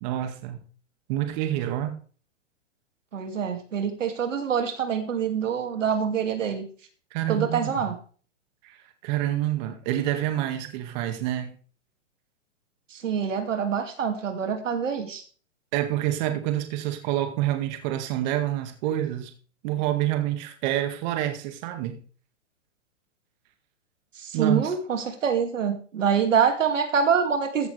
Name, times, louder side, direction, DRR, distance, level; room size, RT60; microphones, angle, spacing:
voice 1, 0.0-0.6 1.1-1.9 7.1-7.9 8.6-11.5 15.7-19.3 19.6-22.0 24.3-24.7, right 13 dB, 35° right, 7 dB, 2.0 m, -27 dB
voice 2, 3.1-6.7 7.3-8.0 12.9-15.2 24.2-27.7, right 7 dB, 85° right, 6 dB, 2.5 m, -25 dB
15.0 x 6.9 x 3.4 m, 0.40 s
hypercardioid pair, 145°, 37 cm